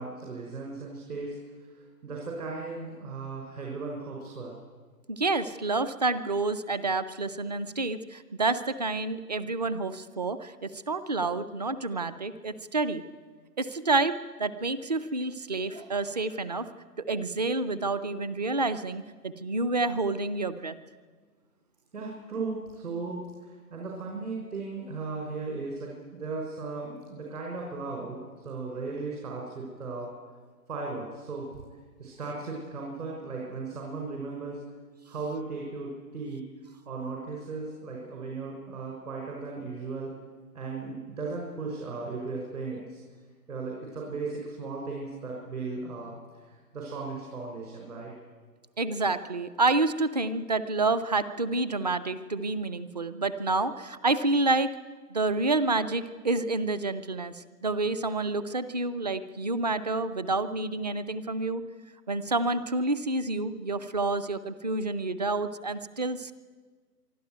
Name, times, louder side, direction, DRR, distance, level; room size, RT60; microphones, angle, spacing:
voice 1, 0.0-1.4 1.7-4.5 21.9-30.1 30.7-31.6 32.0-34.6 35.1-36.4 36.9-40.1 40.5-43.0 43.5-48.1, right 3 dB, 65° right, -1 dB, 6.0 m, -36 dB
voice 2, 5.1-13.0 13.6-16.7 17.0-20.8 48.8-54.7 55.1-61.6 62.1-66.3, right 3 dB, 25° right, 13 dB, 0.6 m, -29 dB
24.5 x 12.5 x 9.2 m, 1.5 s
hypercardioid pair, 150°, 49 cm